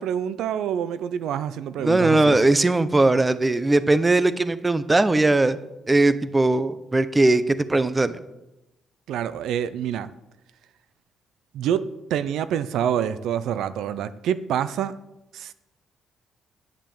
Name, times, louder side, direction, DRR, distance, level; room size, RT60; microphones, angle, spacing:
voice 1, 0.0-2.4 9.1-10.1 11.5-14.9 15.3-15.5, right 9 dB, 80° right, 14 dB, 0.5 m, -27 dB
voice 2, 1.8-5.6 5.9-8.2, right 2 dB, 20° right, 14 dB, 0.7 m, -19 dB
9.9 x 7.5 x 7.1 m, 0.94 s
cardioid pair, 90°, 0 cm